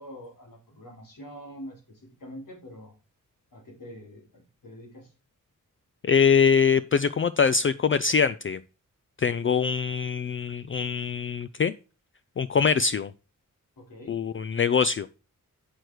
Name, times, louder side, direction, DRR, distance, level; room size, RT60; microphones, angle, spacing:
voice 1, 0.0-2.9 3.5-5.1 13.8-14.2, equal, 85° left, 0 dB, 3.7 m, -45 dB
voice 2, 6.0-8.6 9.2-11.7 12.4-13.1 14.1-15.2, left 6 dB, 40° left, 14 dB, 0.4 m, -23 dB
8.0 x 6.4 x 4.6 m, 0.33 s
wide cardioid pair, 80°, 32 cm